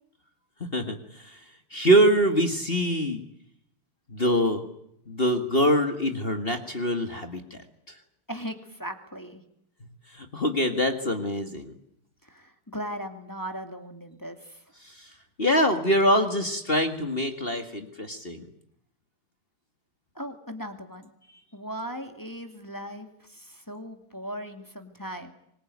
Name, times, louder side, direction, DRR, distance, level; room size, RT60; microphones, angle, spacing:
voice 1, 0.7-1.4 1.7-3.2 4.1-4.6 5.1-7.6 10.1-11.7 15.0-15.1 15.4-18.5, equal, 25° left, 6 dB, 1.9 m, -24 dB
voice 2, 8.3-9.4 12.2-14.6 20.2-21.1 21.5-25.3, equal, 10° left, 6 dB, 2.1 m, -38 dB
25.0 x 21.0 x 9.5 m, 0.74 s
omnidirectional pair, 2.4 m